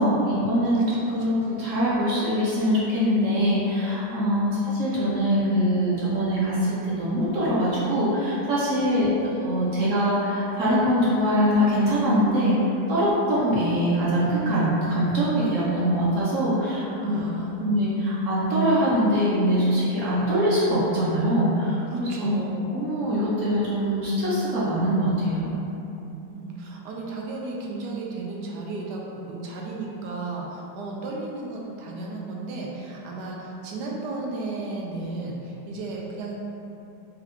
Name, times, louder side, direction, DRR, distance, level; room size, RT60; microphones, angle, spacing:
voice 1, 0.0-6.6 7.0-17.2 17.6-22.4 22.7-25.6, equal, 60° right, -9 dB, 0.8 m, -23 dB
voice 2, 0.9-1.4 4.4-4.6 8.8-9.2 17.0-17.7 21.9-22.6 26.3-36.4, right 2 dB, 80° right, -2 dB, 1.1 m, -34 dB
3.5 x 2.3 x 3.6 m, 2.9 s
omnidirectional pair, 1.9 m